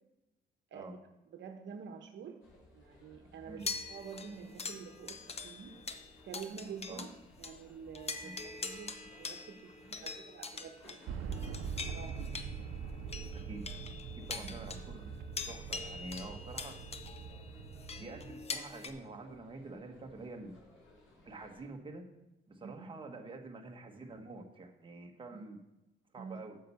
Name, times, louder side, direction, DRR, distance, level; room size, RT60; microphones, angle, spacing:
voice 1, 1.3-2.4 2.7-5.7 6.2-7.1 7.4-11.7 11.9-12.2 14.4-14.6 22.6-22.9 25.3-25.4 26.2-26.4, right 6 dB, 65° right, 5 dB, 1.0 m, -48 dB
sound 1, 2.4-21.7, left 1 dB, 75° left, 3.0 m, -62 dB
sound 2, 3.6-7.2 7.4-7.6 7.9-18.9, left 4 dB, 30° left, 0.8 m, -44 dB
sound 3, 11.1-18.5, right 6 dB, 85° right, 0.7 m, -43 dB
voice 2, 13.3-13.6 14.3-15.1 15.4-16.8 18.0-20.5 21.2-22.0 22.5-25.6 26.1-26.6, right 2 dB, 25° right, 2 dB, 1.3 m, -47 dB
7.6 x 5.6 x 7.0 m, 0.95 s
cardioid pair, 90°, 20 cm